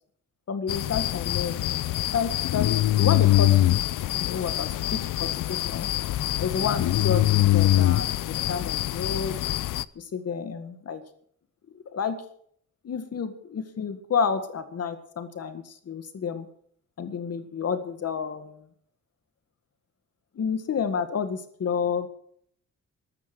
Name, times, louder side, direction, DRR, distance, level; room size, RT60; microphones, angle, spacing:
voice 1, 0.5-1.5 2.1-3.6 4.2-5.9 6.4-9.4 10.0-11.0 11.9-12.2 12.8-16.5 17.0-18.5 20.4-22.1, left 6 dB, 55° left, 9 dB, 1.9 m, -30 dB
sound 1, 0.7-9.8, left 15 dB, 85° left, 0.6 m, -24 dB
13.5 x 13.5 x 6.1 m, 0.62 s
wide cardioid pair, 155°, 31 cm